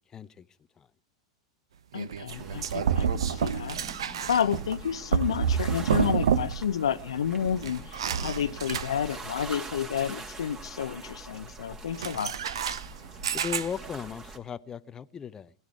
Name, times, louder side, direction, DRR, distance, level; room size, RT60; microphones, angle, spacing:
voice 1, 0.1-0.5 0.8-0.9 13.3-15.5, left 7 dB, 20° left, 0.8 m, -37 dB
voice 2, 1.9-3.8 4.3-12.3, left 8 dB, 70° left, 0.9 m, -30 dB
sound 1, 1.9-6.8 7.0-9.3 11.9-14.0, right 7 dB, 65° right, 1.0 m, -29 dB
sound 2, 2.3-14.4, right 2 dB, 20° right, 2.9 m, -44 dB
21.0 x 12.0 x 4.8 m
figure-of-eight pair, 90°, 3 cm